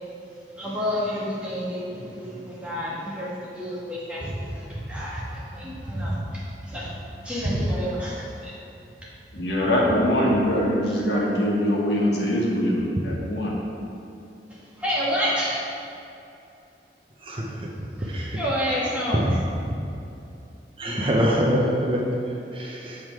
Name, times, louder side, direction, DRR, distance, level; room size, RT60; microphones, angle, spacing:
voice 1, 0.6-6.9 7.2-8.5 14.8-15.6 18.0-19.4, equal, 5° right, -7 dB, 1.5 m, -30 dB
voice 2, 9.3-13.5, equal, 75° left, -3 dB, 1.5 m, -23 dB
voice 3, 18.1-18.4 20.8-22.0 22.5-23.0, equal, 30° right, -1 dB, 0.7 m, -24 dB
7.6 x 5.3 x 4.6 m, 2.7 s
head